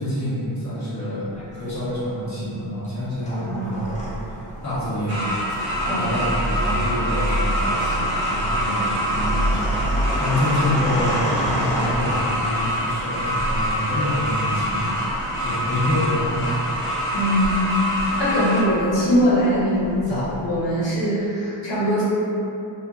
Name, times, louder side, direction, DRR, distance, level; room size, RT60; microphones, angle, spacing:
voice 1, 0.0-4.0 4.6-5.3 5.9-9.8 10.2-15.1 15.4-16.5 20.1-20.2, left 1 dB, 35° left, -10 dB, 1.0 m, -27 dB
sound 1, 1.3-2.1 2.8-20.6, equal, 15° left, 0.6 m, -30 dB
sound 2, 5.1-18.6, equal, 70° right, 0.9 m, -26 dB
voice 2, 17.1-22.0, equal, 60° left, -8 dB, 1.0 m, -21 dB
2.5 x 2.5 x 2.3 m, 2.8 s
cardioid pair, 70°, 49 cm